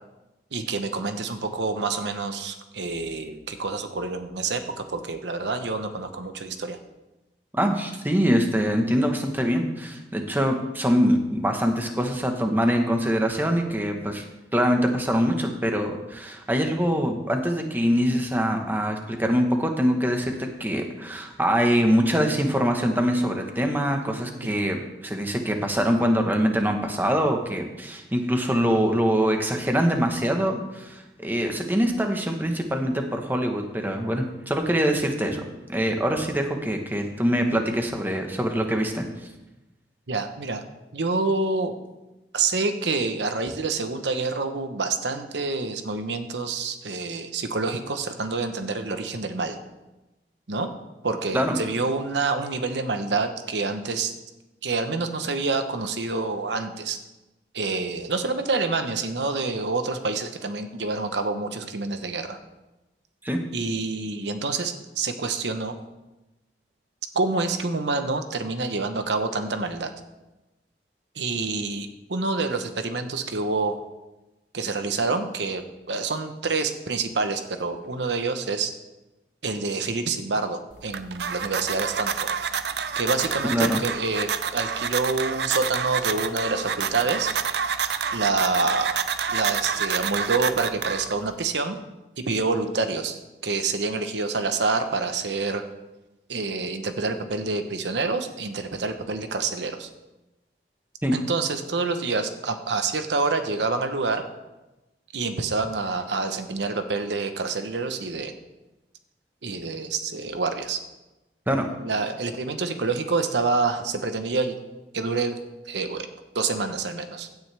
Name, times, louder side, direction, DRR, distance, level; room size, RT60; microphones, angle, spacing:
voice 1, 0.5-6.8 24.4-24.5 40.1-40.6 40.9-41.7 42.3-49.6 50.5-50.7 51.0-54.1 54.6-57.0 57.5-62.4 63.5-65.7 67.1-69.9 71.2-73.8 74.5-78.7 79.4-82.3 83.0-87.3 88.1-89.0 89.3-91.8 92.2-95.6 96.3-99.9 101.1-104.2 105.1-108.3 109.4-110.8 111.8-114.6 114.9-115.4 115.7-116.1 116.3-117.3, right 3 dB, 85° right, 8 dB, 1.0 m, -27 dB
voice 2, 7.5-14.3 14.5-35.4 35.7-39.3 51.3-51.6 63.2-63.4 83.5-83.8 101.0-101.1 111.5-111.7, equal, 10° right, 3 dB, 1.2 m, -24 dB
sound 1, 80.7-91.4, right 7 dB, 70° right, 0.6 m, -28 dB
16.5 x 9.3 x 3.4 m, 1.0 s
head